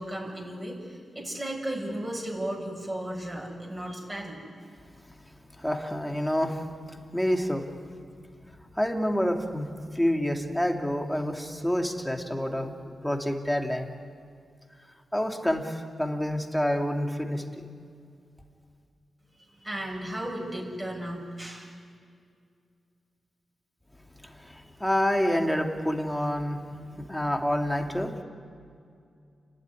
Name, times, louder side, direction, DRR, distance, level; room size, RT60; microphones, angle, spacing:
voice 1, 0.0-4.5 19.3-21.7, right 1 dB, 25° right, -2 dB, 7.0 m, -35 dB
voice 2, 5.6-7.7 8.8-13.9 15.1-17.7 24.2-26.6 27.0-28.2, equal, 5° left, 3 dB, 2.5 m, -28 dB
30.0 x 12.0 x 9.8 m, 2.3 s
cardioid pair, 65°, 0 cm